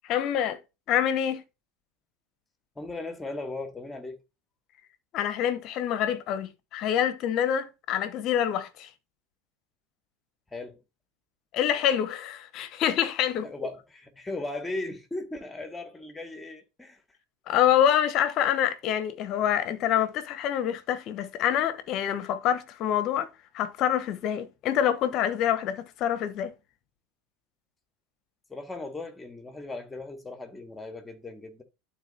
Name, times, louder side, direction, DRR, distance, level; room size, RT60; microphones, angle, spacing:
voice 1, 0.0-0.6 0.9-1.4 5.1-8.9 11.5-13.5 17.5-23.3 23.5-26.5, left 10 dB, 50° left, 0.9 m, -26 dB
voice 2, 2.8-4.2 10.5-10.8 13.4-17.0 28.5-31.6, left 2 dB, 10° left, 1.9 m, -37 dB
12.0 x 4.1 x 2.7 m
hypercardioid pair, 80°, 0 cm